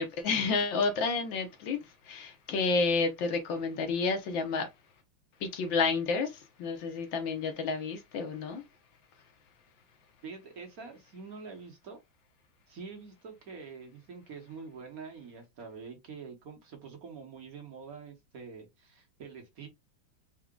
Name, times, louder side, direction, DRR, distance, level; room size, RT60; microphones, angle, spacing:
voice 1, 0.0-4.7 5.4-8.6, left 4 dB, 80° left, 1.7 m, -30 dB
voice 2, 10.2-12.0 12.7-19.7, right 5 dB, 55° right, 1.4 m, -46 dB
4.7 x 2.3 x 3.7 m
omnidirectional pair, 2.0 m